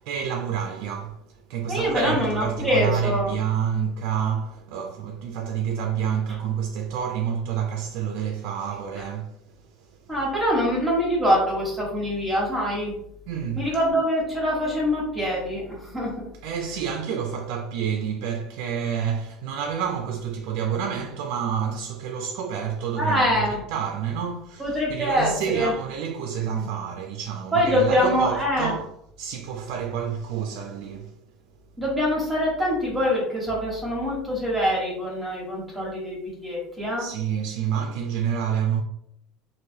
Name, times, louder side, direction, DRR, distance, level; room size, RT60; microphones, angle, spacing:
voice 1, 0.0-10.0 13.3-13.7 16.4-28.9 29.2-31.2 37.0-38.8, right 8 dB, 75° right, 0.3 m, -28 dB
voice 2, 1.7-3.3 10.1-12.9 13.6-16.3 23.0-23.6 24.6-25.7 26.5-26.7 27.5-28.7 31.8-37.1, equal, 10° right, 1.2 m, -24 dB
3.1 x 2.5 x 2.7 m
supercardioid pair, 125°, 0 cm